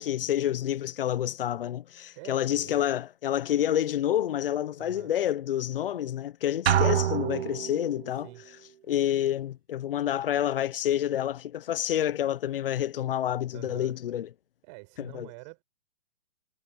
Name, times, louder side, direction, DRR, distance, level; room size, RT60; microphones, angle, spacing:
voice 1, 0.0-8.3 8.9-14.3 15.0-15.3, left 11 dB, 60° left, 0.9 m, -28 dB
voice 2, 2.1-2.8 4.8-5.1 8.1-8.5 13.5-14.0 14.6-15.6, right 29 dB, 30° right, 5.1 m, -47 dB
sound 1, 6.7-8.1, right 10 dB, 80° right, 0.9 m, -26 dB
hypercardioid pair, 160°, 31 cm